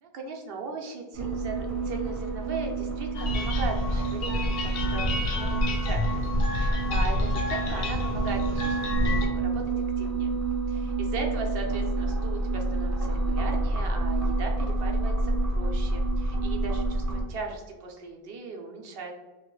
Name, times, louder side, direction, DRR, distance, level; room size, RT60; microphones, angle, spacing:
voice 1, 0.0-10.3 10.7-19.1, right 4 dB, 70° right, 2 dB, 0.8 m, -38 dB
sound 1, 1.1-17.2, right 3 dB, 35° right, 0.8 m, -29 dB
sound 2, 3.1-9.3, left 1 dB, 70° left, 0.8 m, -27 dB
2.9 x 2.8 x 3.0 m, 1.2 s
omnidirectional pair, 1.0 m